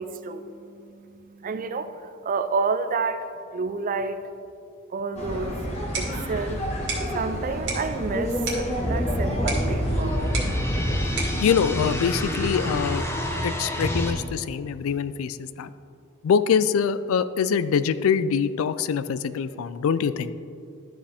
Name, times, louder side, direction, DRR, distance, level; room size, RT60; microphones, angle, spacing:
voice 1, 0.0-1.9 2.2-3.3 3.5-4.2 4.9-5.6 6.0-6.6 7.1-10.1, right 4 dB, 40° right, 11 dB, 0.4 m, -29 dB
sound 1, 5.2-11.2, equal, 30° left, 1.5 m, -30 dB
sound 2, 5.6-12.6, right 3 dB, 60° right, 2.0 m, -37 dB
sound 3, 8.8-14.1, equal, 10° left, 0.8 m, -27 dB
voice 2, 11.4-13.1 13.4-15.7 16.2-20.3, left 7 dB, 70° left, 14 dB, 0.3 m, -24 dB
12.0 x 5.0 x 3.5 m, 2.5 s
head